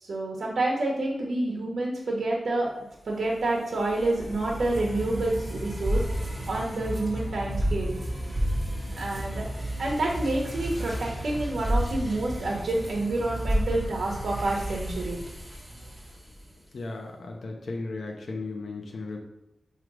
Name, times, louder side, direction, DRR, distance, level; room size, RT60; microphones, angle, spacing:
voice 1, 0.1-2.7 3.0-6.0 6.5-7.9 9.0-9.4 9.8-15.2, right 2 dB, 80° right, -3 dB, 1.1 m, -28 dB
sound 1, 3.1-16.5, equal, 5° right, 1.7 m, -32 dB
voice 2, 16.7-19.2, left 3 dB, 75° left, 1 dB, 0.7 m, -35 dB
6.1 x 3.3 x 4.9 m, 0.91 s
wide cardioid pair, 110°, 0 cm